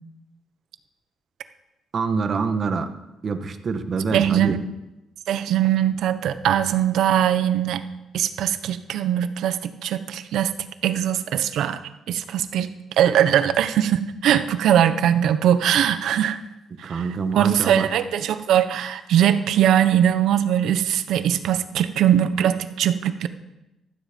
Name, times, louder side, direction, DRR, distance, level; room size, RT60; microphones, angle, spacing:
voice 1, 1.9-2.9 3.2-4.6 16.8-17.9, right 4 dB, 45° right, 7 dB, 1.6 m, -25 dB
voice 2, 4.1-4.5 5.3-7.8 8.1-10.5 10.8-11.8 12.1-12.7 13.0-16.4 16.8-17.0 17.3-23.3, right 10 dB, 80° right, 11 dB, 1.1 m, -21 dB
15.5 x 12.5 x 5.4 m, 0.95 s
cardioid pair, 90°, 0 cm